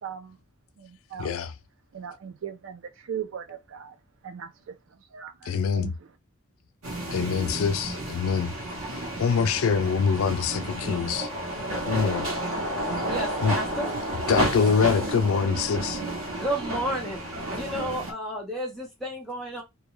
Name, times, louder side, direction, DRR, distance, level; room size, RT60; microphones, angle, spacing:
voice 1, 0.0-0.4 0.8-1.4 1.9-4.0 4.2-6.1, right 8 dB, 65° right, 0.4 m, -39 dB
voice 2, 1.2-1.5 5.5-5.9 7.1-8.5 9.0-11.3 11.9-12.3 13.4-13.6 14.3-16.0, left 6 dB, 80° left, 0.4 m, -24 dB
sound 1, 6.8-18.1, right 1 dB, 90° right, 0.9 m, -31 dB
voice 3, 13.0-13.9 16.3-17.2 17.5-19.6, equal, ahead, 0.6 m, -31 dB
2.3 x 2.2 x 3.0 m
head